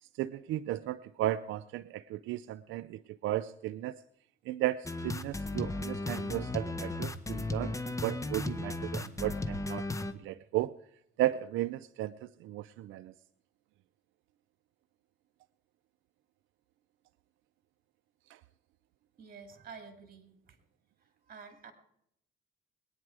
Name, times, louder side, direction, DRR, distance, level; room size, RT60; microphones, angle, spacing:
voice 1, 0.0-4.0 4.5-7.7 8.0-9.9 10.2-10.7 11.2-13.1 18.3-18.4, right 14 dB, 85° right, 12 dB, 0.4 m, -35 dB
sound 1, 4.8-10.1, left 2 dB, 15° left, 1.0 m, -35 dB
voice 2, 19.2-20.6 21.0-21.7, right 5 dB, 45° right, 8 dB, 2.6 m, -50 dB
21.0 x 9.7 x 4.7 m, 0.74 s
cardioid pair, 90°, 20 cm